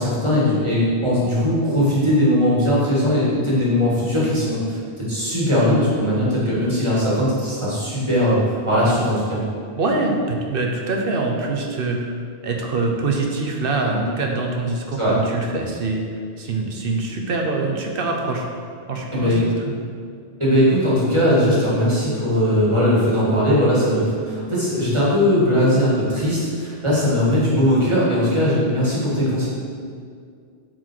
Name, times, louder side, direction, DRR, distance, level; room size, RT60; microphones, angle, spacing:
voice 1, 0.0-8.4 8.7-9.4 15.0-15.2 19.1-19.4 20.4-29.5, equal, 25° right, -8 dB, 2.2 m, -19 dB
voice 2, 9.8-12.0 12.4-16.1 16.4-18.5 18.9-19.8, right 3 dB, 55° right, 1 dB, 1.1 m, -24 dB
7.8 x 4.7 x 4.6 m, 2.2 s
omnidirectional pair, 1.2 m